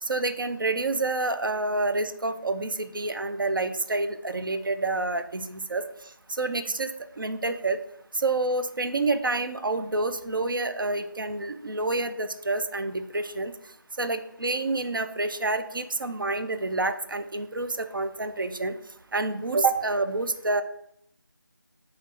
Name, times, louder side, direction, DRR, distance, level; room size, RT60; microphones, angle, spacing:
voice 1, 0.0-5.8 6.3-6.9 7.2-7.8 8.1-13.5 14.0-18.7 19.1-20.6, right 2 dB, 70° right, 9 dB, 0.4 m, -28 dB
4.9 x 2.8 x 2.8 m, 0.74 s
figure-of-eight pair, 165°, 11 cm